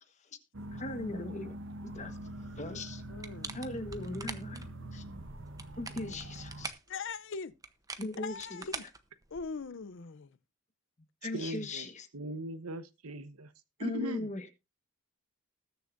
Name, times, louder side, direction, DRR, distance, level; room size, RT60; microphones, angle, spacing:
sound 1, 0.5-6.7, right 1 dB, 55° right, 1.2 m, -44 dB
voice 1, 0.7-1.6 1.8-2.2 2.6-3.0 3.5-5.0 5.8-6.7 8.0-8.6 11.2-12.1 13.8-14.6, left 2 dB, 30° left, 1.3 m, -39 dB
voice 2, 3.1-3.6 6.0-6.2 6.9-7.5 8.2-8.8 9.3-10.3 11.4-11.5, left 5 dB, 55° left, 0.6 m, -41 dB
sound 2, 3.2-4.7 5.4-6.9 7.6-9.6, right 4 dB, 15° right, 0.8 m, -43 dB
voice 3, 11.3-11.8 12.1-13.5 13.8-14.3, right 1 dB, 80° right, 1.1 m, -39 dB
20.0 x 6.9 x 2.6 m
head